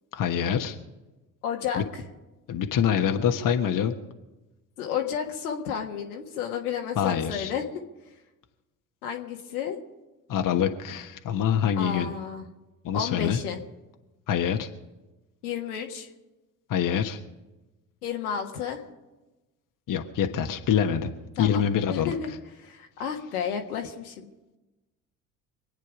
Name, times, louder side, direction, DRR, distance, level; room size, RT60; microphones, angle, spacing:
voice 1, 0.1-0.8 1.7-1.8 2.5-3.9 7.0-7.5 10.3-12.1 12.8-13.4 14.3-14.7 16.7-17.2 19.9-21.1 21.4-22.1, left 8 dB, 45° left, 5 dB, 1.3 m, -25 dB
voice 2, 1.4-2.0 4.8-7.6 9.0-9.8 11.8-12.4 12.9-13.6 15.4-16.1 18.0-18.8 21.4-21.6 21.9-22.3 22.6-24.3, left 8 dB, 80° left, 2 dB, 1.7 m, -32 dB
25.0 x 9.3 x 5.0 m, 1.1 s
figure-of-eight pair, 55°, 44 cm